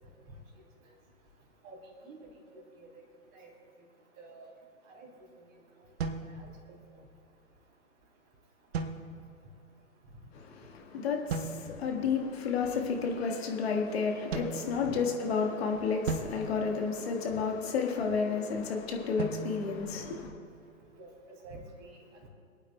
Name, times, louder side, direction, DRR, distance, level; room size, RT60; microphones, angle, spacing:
voice 1, 2.0-2.6 3.3-3.5 4.2-4.5 4.9-5.1 6.2-6.5 11.3-11.4 14.8-14.9 21.0-22.3, right 2 dB, 30° right, 3.3 m, -49 dB
sound 1, 6.0-7.1 8.7-9.5 11.3-12.0 14.3-15.4 16.1-17.5 19.2-20.7, right 4 dB, 50° right, 1.0 m, -39 dB
voice 2, 10.3-20.3, left 5 dB, 50° left, 1.7 m, -31 dB
26.5 x 9.0 x 2.3 m
figure-of-eight pair, 125°, 40 cm